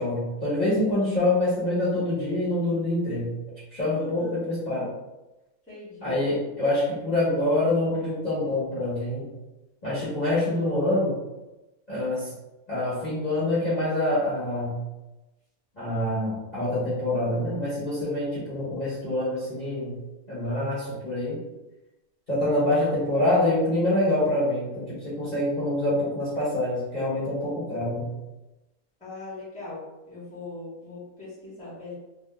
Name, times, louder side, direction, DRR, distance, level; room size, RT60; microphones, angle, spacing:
voice 1, 0.0-3.3 3.7-4.9 6.0-9.2 9.8-11.2 11.9-12.3 12.7-14.8 15.8-19.9 20.3-21.4 22.3-28.1, left 1 dB, 30° left, -11 dB, 1.2 m, -26 dB
voice 2, 3.9-4.4 5.7-6.2 10.5-10.9 29.0-32.0, left 2 dB, 5° left, -9 dB, 1.1 m, -40 dB
3.6 x 2.4 x 2.3 m, 1.0 s
omnidirectional pair, 1.6 m